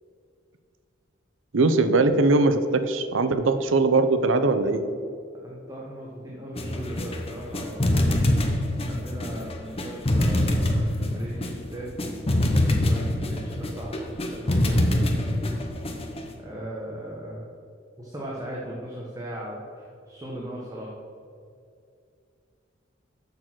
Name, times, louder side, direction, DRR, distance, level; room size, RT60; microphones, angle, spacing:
voice 1, 1.5-4.8, right 3 dB, 80° right, 10 dB, 0.6 m, -21 dB
voice 2, 5.4-8.1 8.9-15.2 16.4-17.4 18.0-20.9, right 1 dB, 20° right, -4 dB, 1.1 m, -38 dB
sound 1, 6.6-16.3, left 1 dB, 30° left, 0.8 m, -24 dB
6.9 x 6.2 x 6.0 m, 2.4 s
head